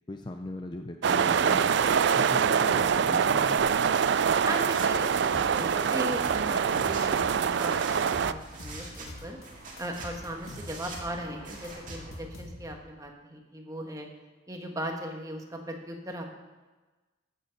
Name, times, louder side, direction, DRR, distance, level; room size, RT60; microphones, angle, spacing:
voice 1, 0.1-1.7 2.1-3.7, left 1 dB, 20° left, 5 dB, 0.5 m, -39 dB
sound 1, 1.0-8.3, right 7 dB, 60° right, 0.4 m, -25 dB
sound 2, 3.6-12.2, right 2 dB, 40° right, 2.1 m, -45 dB
voice 2, 4.4-7.7 8.1-9.4 9.8-14.1 14.5-16.3, right 1 dB, 15° right, 2 dB, 1.4 m, -37 dB
sound 3, 5.3-5.7 6.0-7.6 7.9-9.5 9.8-12.9, left 1 dB, 90° left, 2.3 m, -45 dB
14.0 x 8.2 x 5.2 m, 1.2 s
head